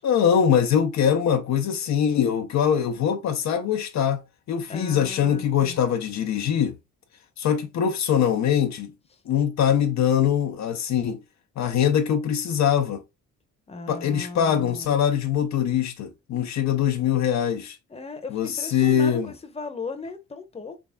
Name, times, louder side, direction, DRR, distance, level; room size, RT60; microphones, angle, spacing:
voice 1, 0.0-4.2 4.5-6.8 7.4-8.9 9.3-11.2 11.6-13.0 13.9-17.8 18.3-19.3, left 8 dB, 65° left, 0.6 m, -23 dB
voice 2, 4.7-5.8 13.7-15.0 17.9-20.8, left 4 dB, 20° left, 0.9 m, -37 dB
3.6 x 3.3 x 2.2 m
cardioid pair, 90°, 30 cm